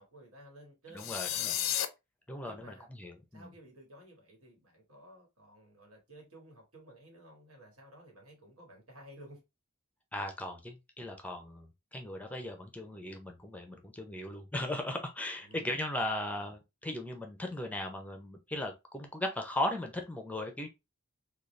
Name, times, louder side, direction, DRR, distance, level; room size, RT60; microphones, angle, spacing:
voice 1, 0.0-1.8 2.4-2.9 3.3-9.4 15.4-15.8, right 1 dB, 85° right, 1.6 m, -54 dB
voice 2, 0.9-1.5 2.3-3.5 10.1-20.7, left 1 dB, 5° left, 0.5 m, -37 dB
sound 1, 1.0-1.9, left 11 dB, 75° left, 0.5 m, -32 dB
3.8 x 2.3 x 3.1 m
head